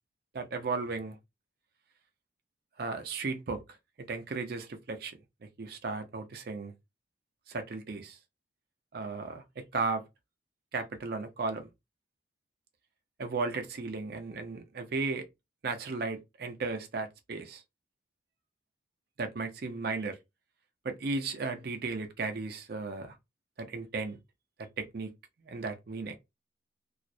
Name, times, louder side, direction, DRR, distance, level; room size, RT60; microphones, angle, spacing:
voice 1, 0.3-1.2 2.8-3.6 4.0-5.2 5.6-6.7 7.5-8.2 8.9-10.0 10.7-11.7 13.2-15.3 15.6-17.6 19.2-20.2 20.8-23.2 23.6-24.2 24.8-25.1 25.5-26.2, right 3 dB, 55° right, 0.5 m, -35 dB
2.4 x 2.0 x 2.6 m
head